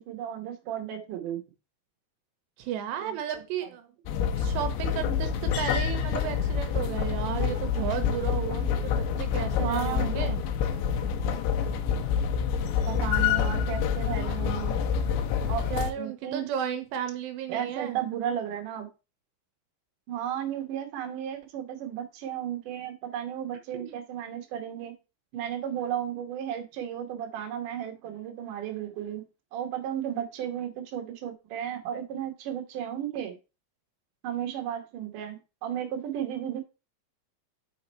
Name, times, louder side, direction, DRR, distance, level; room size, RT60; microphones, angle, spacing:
voice 1, 0.0-1.4 3.0-3.4 7.4-7.5 7.9-8.0 9.6-10.2 12.9-14.8 15.5-15.6 16.0-16.5 17.5-18.9 20.1-24.9 25.3-29.2 29.5-33.4 34.2-36.6, right 10 dB, 65° right, 3 dB, 2.2 m, -34 dB
voice 2, 2.6-3.9 4.3-5.3 5.6-10.4 15.7-18.0 23.7-24.0, right 9 dB, 80° right, 8 dB, 2.8 m, -34 dB
sound 1, 4.1-15.9, left 7 dB, 85° left, 3.0 m, -27 dB
6.1 x 4.9 x 4.2 m, 0.29 s
omnidirectional pair, 5.0 m